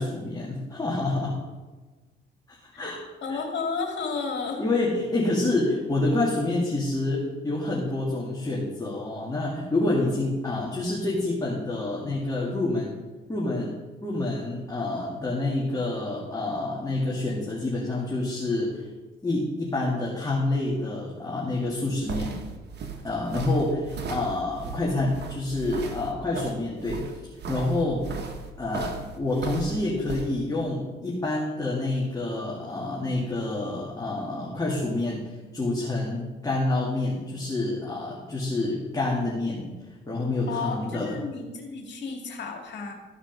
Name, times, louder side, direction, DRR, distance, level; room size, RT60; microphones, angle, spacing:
voice 1, 0.0-1.4 2.5-3.0 3.3-3.4 4.6-12.9 13.3-13.8 14.0-18.9 19.2-22.3 23.0-27.1 27.5-28.0 28.6-39.7 40.1-41.2, left 2 dB, 20° left, -4 dB, 2.1 m, -28 dB
voice 2, 3.2-4.6 40.5-42.9, left 4 dB, 65° left, 2 dB, 2.2 m, -32 dB
sound 1, 21.7-30.3, right 5 dB, 60° right, 1.3 m, -36 dB
14.0 x 5.1 x 5.2 m, 1.2 s
cardioid pair, 90°, 20 cm